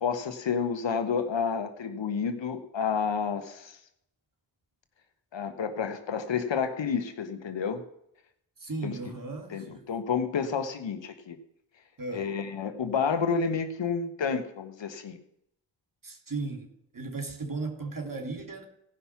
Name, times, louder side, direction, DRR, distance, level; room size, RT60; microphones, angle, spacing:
voice 1, 0.0-3.8 5.3-7.8 8.8-9.0 9.5-11.4 12.1-15.2, left 6 dB, 65° left, 8 dB, 1.4 m, -30 dB
voice 2, 8.6-9.8 12.0-12.3 16.0-18.6, right 3 dB, 40° right, 4 dB, 2.9 m, -36 dB
17.0 x 5.7 x 5.9 m, 0.76 s
supercardioid pair, 45°, 48 cm